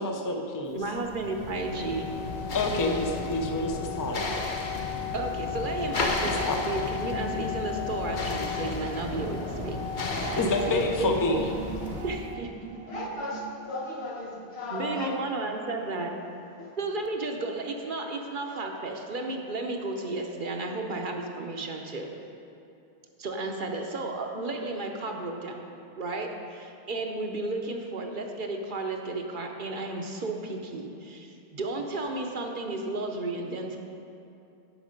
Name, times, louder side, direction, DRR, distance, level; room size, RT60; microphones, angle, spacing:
voice 1, 0.0-0.8 2.5-3.7 4.0-4.2 6.2-6.6 10.4-11.5, left 2 dB, 25° left, 3 dB, 0.5 m, -27 dB
voice 2, 0.7-2.1 5.1-10.4 10.7-11.1 12.0-12.5 14.7-16.1 16.8-22.1 23.2-25.6 26.0-33.8, right 2 dB, 55° right, 2 dB, 0.9 m, -33 dB
sound 1, 0.8-12.3, left 2 dB, 50° left, 0.9 m, -34 dB
sound 2, 1.5-10.6, left 8 dB, 5° left, 0.9 m, -36 dB
sound 3, 10.1-14.8, right 5 dB, 85° right, 0.9 m, -41 dB
voice 3, 12.9-15.1 16.6-16.7, left 2 dB, 75° left, -1 dB, 1.4 m, -35 dB
9.3 x 6.3 x 5.1 m, 2.6 s
omnidirectional pair, 1.1 m